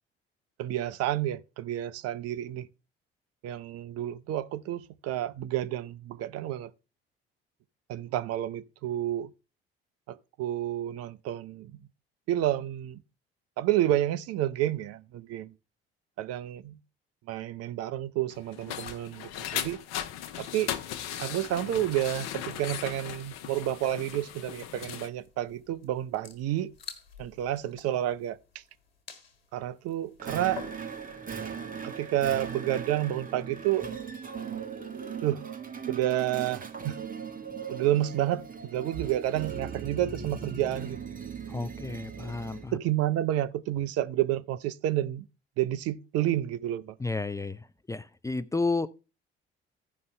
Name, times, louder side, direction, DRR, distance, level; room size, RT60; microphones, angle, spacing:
voice 1, 0.6-2.7 3.4-6.7 7.9-9.3 10.1-11.8 12.3-13.0 13.6-15.5 16.2-16.8 17.3-19.8 20.4-20.7 21.2-26.7 27.2-28.4 29.5-30.6 31.8-33.9 35.2-35.5 35.9-37.0 37.7-41.1 42.7-45.3 45.6-47.0, right 13 dB, 55° right, 0.6 m, -30 dB
sound 1, 18.3-25.1, left 10 dB, 60° left, 0.8 m, -37 dB
sound 2, 18.8-31.2, left 6 dB, 80° left, 1.5 m, -51 dB
sound 3, 30.2-42.7, right 6 dB, 30° right, 1.7 m, -39 dB
voice 2, 41.5-42.8 47.0-47.6 47.9-48.9, left 3 dB, 10° left, 0.5 m, -31 dB
15.0 x 5.4 x 3.3 m
figure-of-eight pair, 55°, 30 cm